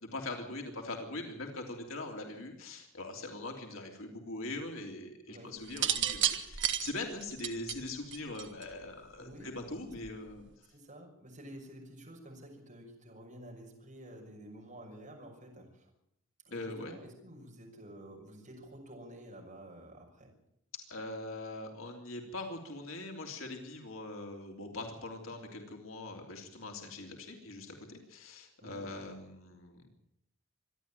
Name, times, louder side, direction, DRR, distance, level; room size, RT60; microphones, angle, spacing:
voice 1, 0.0-10.5 16.5-16.9 20.9-29.9, left 2 dB, 80° left, 2 dB, 3.2 m, -42 dB
voice 2, 5.3-5.6 9.2-9.6 10.7-15.9 16.4-20.3 28.6-28.9, right 1 dB, 40° right, 0 dB, 6.2 m, -50 dB
sound 1, 5.7-8.8 9.9-10.3, right 10 dB, 60° right, 1.4 m, -32 dB
26.0 x 11.0 x 9.1 m, 0.78 s
head